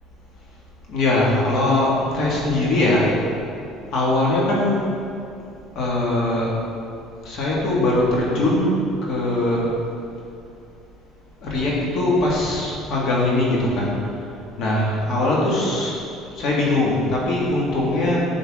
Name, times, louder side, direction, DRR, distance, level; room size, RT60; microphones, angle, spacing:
voice 1, 0.9-3.1 3.9-4.8 5.8-6.5 7.2-8.7 9.0-9.7 11.4-13.9 14.6-15.9 16.3-18.2, left 2 dB, 55° left, -4 dB, 2.0 m, -21 dB
10.5 x 6.7 x 3.7 m, 2.6 s
cardioid pair, 140°, 0 cm